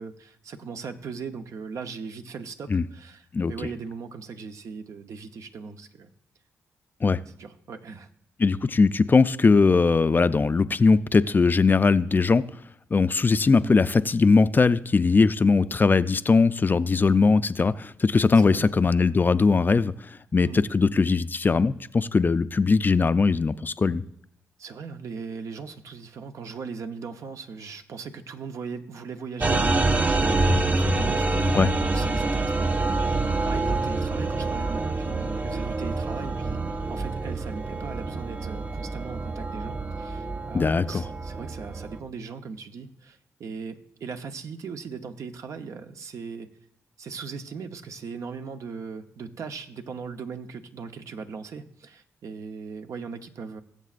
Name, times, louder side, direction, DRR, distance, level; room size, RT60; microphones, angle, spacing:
voice 1, 0.0-6.1 7.4-8.1 13.6-13.8 18.3-18.7 20.4-20.7 24.6-31.5 31.9-46.5 47.0-53.6, right 5 dB, 70° right, 7 dB, 0.8 m, -39 dB
voice 2, 8.4-12.4 12.9-19.9 20.3-24.0 31.5-31.7 40.5-41.0, left 4 dB, 35° left, 14 dB, 0.4 m, -20 dB
sound 1, 29.4-42.0, right 2 dB, 30° right, 0.7 m, -26 dB
20.0 x 7.3 x 2.5 m, 0.73 s
cardioid pair, 60°, 6 cm